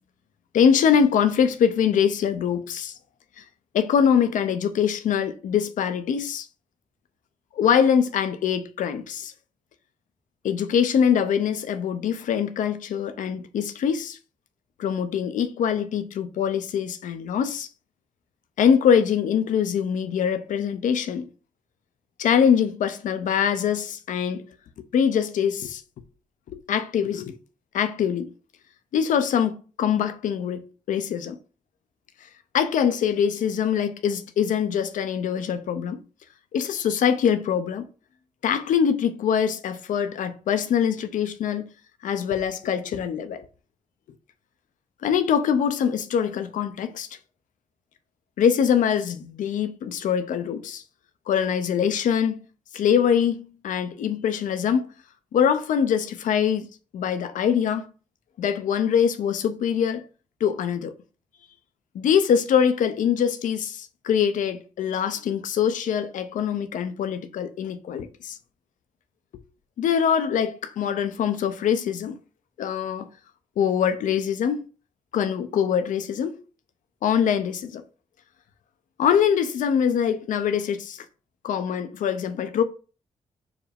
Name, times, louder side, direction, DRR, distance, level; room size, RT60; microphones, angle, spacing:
voice 1, 0.5-2.9 3.4-3.5 3.7-6.5 7.6-9.3 10.4-14.2 14.8-17.7 18.6-21.3 22.2-24.4 24.8-25.8 26.5-27.4 27.7-28.3 28.9-31.4 32.5-36.0 36.5-37.9 38.4-41.6 42.0-43.5 45.0-47.1 48.4-50.8 51.3-52.4 52.7-54.9 55.3-56.7 56.9-57.9 58.4-60.0 60.4-60.9 61.9-68.4 69.8-72.2 72.6-73.1 73.6-74.7 75.1-76.4 77.0-77.8 79.0-81.0 81.4-82.6, left 8 dB, 75° left, 0.5 m, -23 dB
4.7 x 2.2 x 3.4 m
supercardioid pair, 40°, 14 cm